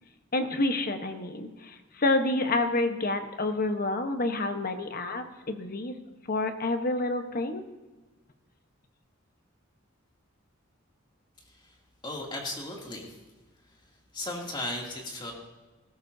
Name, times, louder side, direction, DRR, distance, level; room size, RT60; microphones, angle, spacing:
voice 1, 0.3-6.0 6.3-7.7, left 2 dB, 45° left, 7 dB, 1.1 m, -28 dB
voice 2, 12.0-13.2 14.1-15.3, left 1 dB, 25° left, -1 dB, 2.6 m, -36 dB
18.5 x 15.5 x 2.7 m, 1.2 s
head